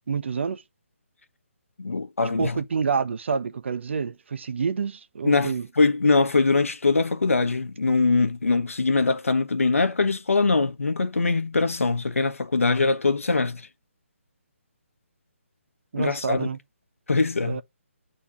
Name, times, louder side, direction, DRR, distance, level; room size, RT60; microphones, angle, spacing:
voice 1, 0.1-0.6 2.4-5.7 15.9-16.6 17.4-17.6, right 5 dB, 60° right, 0.8 m, -28 dB
voice 2, 1.8-2.6 5.2-13.7 15.9-16.5 17.1-17.6, left 3 dB, 80° left, 1.3 m, -22 dB
8.2 x 4.0 x 3.7 m
figure-of-eight pair, 145°, 7 cm